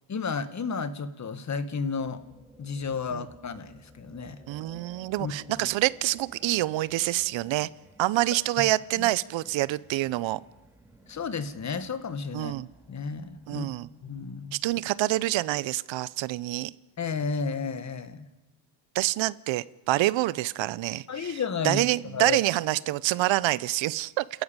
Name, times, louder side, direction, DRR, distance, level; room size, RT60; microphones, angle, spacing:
voice 1, 0.1-2.2 2.6-4.4 5.2-5.3 9.0-9.1 11.1-12.5 12.9-13.7 14.0-14.5 17.0-18.3 21.1-21.8 22.1-22.4, left 5 dB, 35° left, 12 dB, 1.6 m, -32 dB
sound 1, 1.9-15.8, right 1 dB, 5° right, 3.0 m, -56 dB
voice 2, 4.5-7.7 8.0-10.4 12.3-12.7 13.5-13.9 14.5-16.7 18.9-24.2, right 17 dB, 70° right, 19 dB, 0.8 m, -27 dB
29.0 x 14.5 x 9.0 m, 1.1 s
cardioid pair, 105°, 47 cm